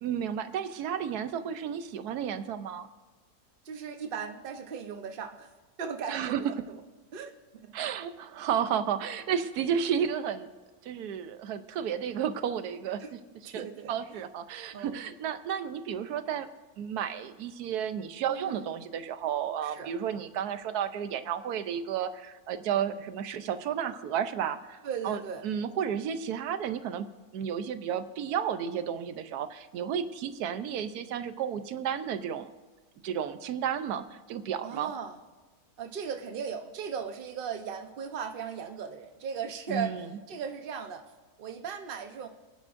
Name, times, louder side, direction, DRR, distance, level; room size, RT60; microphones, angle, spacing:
voice 1, 0.0-2.9 6.1-6.4 7.7-10.5 10.8-16.5 16.8-24.8 25.0-32.5 33.0-34.9 39.7-40.1, right 8 dB, 85° right, 11 dB, 1.2 m, -32 dB
voice 2, 3.6-5.5 5.8-6.6 7.1-7.3 7.6-7.7 13.0-13.1 13.4-14.2 14.7-15.0 18.3-18.7 19.6-19.9 24.8-25.4 34.6-35.2 35.8-40.0 40.3-41.0 41.4-42.3, right 6 dB, 45° right, 5 dB, 0.9 m, -37 dB
27.0 x 9.7 x 2.6 m, 1.3 s
omnidirectional pair, 1.6 m